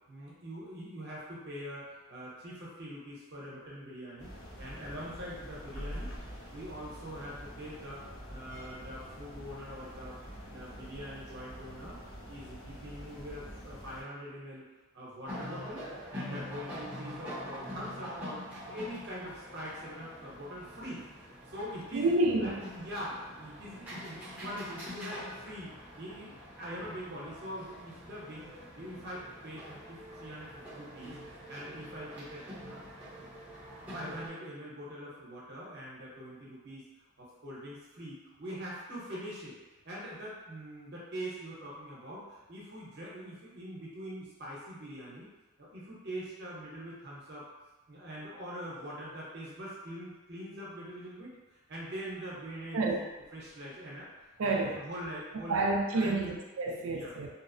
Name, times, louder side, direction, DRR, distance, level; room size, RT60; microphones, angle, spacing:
voice 1, 0.1-6.1 6.5-8.0 8.3-10.1 10.5-12.0 12.3-14.6 14.9-15.9 16.1-18.4 18.7-21.0 21.5-22.1 22.4-26.3 26.6-28.5 28.8-32.8 33.9-36.8 37.2-39.5 39.8-45.3 45.6-47.4 47.9-51.4 51.7-53.0 53.3-54.1 54.4-55.6 55.9-56.3 56.8-57.1, equal, 50° right, -6 dB, 0.8 m, -43 dB
sound 1, 4.2-14.0, equal, 85° left, 1.1 m, -46 dB
sound 2, 15.2-34.3, equal, 10° right, 0.6 m, -45 dB
voice 2, 21.9-22.6 52.7-53.0 54.4-54.8 55.5-57.3, right 2 dB, 70° right, 1 dB, 0.4 m, -29 dB
2.7 x 2.0 x 2.5 m, 1.1 s
head